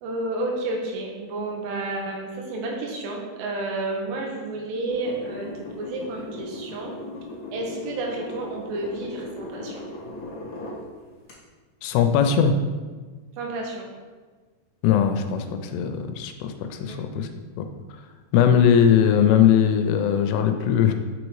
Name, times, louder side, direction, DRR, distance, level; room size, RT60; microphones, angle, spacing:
voice 1, 0.0-6.9 7.5-9.9 13.4-13.9 16.9-17.0, right 2 dB, 90° right, 0 dB, 3.1 m, -31 dB
sound 1, 4.9-10.8 11.3-11.4, left 2 dB, 55° left, 1.7 m, -37 dB
voice 2, 11.8-12.5 14.8-17.3 17.6-17.7 18.3-20.9, left 8 dB, 85° left, 7 dB, 2.6 m, -20 dB
6.5 x 5.2 x 3.1 m, 1.4 s
omnidirectional pair, 4.9 m